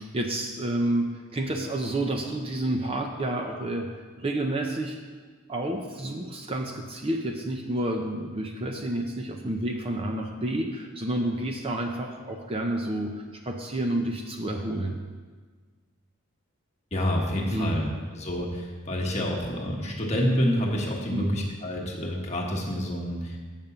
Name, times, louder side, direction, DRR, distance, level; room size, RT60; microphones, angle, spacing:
voice 1, 0.0-3.9 4.2-5.0 5.5-15.0 17.5-17.9 21.1-21.4, right 1 dB, 25° right, 3 dB, 0.6 m, -29 dB
voice 2, 16.9-23.4, equal, 30° left, -1 dB, 1.2 m, -28 dB
7.4 x 5.2 x 6.8 m, 1.5 s
head